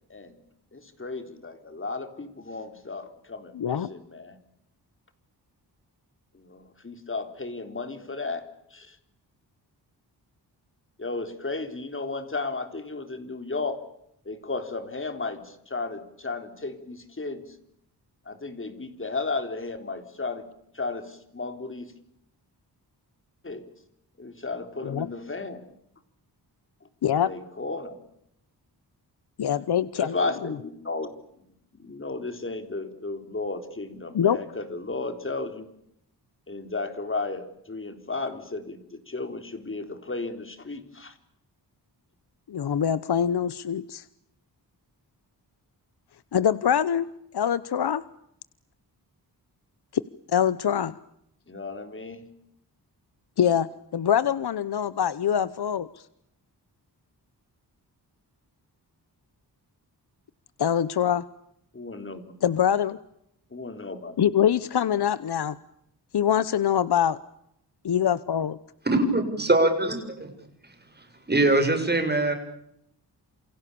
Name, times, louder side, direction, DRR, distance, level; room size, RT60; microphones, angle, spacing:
voice 1, 0.7-4.4 6.3-8.4 8.7-9.0 11.0-13.8 14.3-17.6 18.3-20.5 20.7-21.9 23.4-23.7 24.2-25.6 27.1-28.0 30.0-31.1 31.7-35.7 36.5-41.1 51.5-52.3 55.4-55.5 61.7-62.2 63.5-64.7, left 3 dB, 30° left, 8 dB, 4.0 m, -34 dB
voice 2, 3.5-3.9 24.8-25.1 27.0-27.3 29.4-30.1 34.1-34.4 42.5-44.0 46.3-47.1 47.3-48.0 50.3-51.0 53.4-55.9 60.6-61.2 62.4-63.0 64.2-65.6 66.1-67.2 67.8-68.6, left 9 dB, 70° left, 16 dB, 1.0 m, -24 dB
voice 3, 68.9-70.3 71.3-72.3, right 2 dB, 25° right, 6 dB, 7.2 m, -22 dB
28.5 x 28.5 x 7.0 m, 0.76 s
wide cardioid pair, 140°, 41 cm